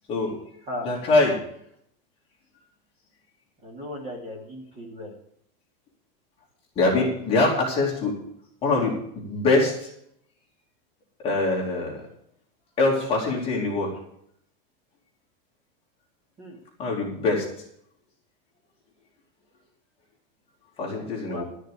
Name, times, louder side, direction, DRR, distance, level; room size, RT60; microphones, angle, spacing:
voice 1, 0.1-0.4 0.8-1.4 6.7-8.2 8.6-9.9 11.2-12.0 12.8-13.9 16.8-17.4 20.8-21.4, left 2 dB, 20° left, -3 dB, 3.0 m, -23 dB
voice 2, 3.6-5.1 16.4-16.6 21.3-21.4, left 1 dB, 20° right, 0 dB, 2.9 m, -36 dB
13.0 x 6.6 x 8.4 m, 0.71 s
supercardioid pair, 180°, 29 cm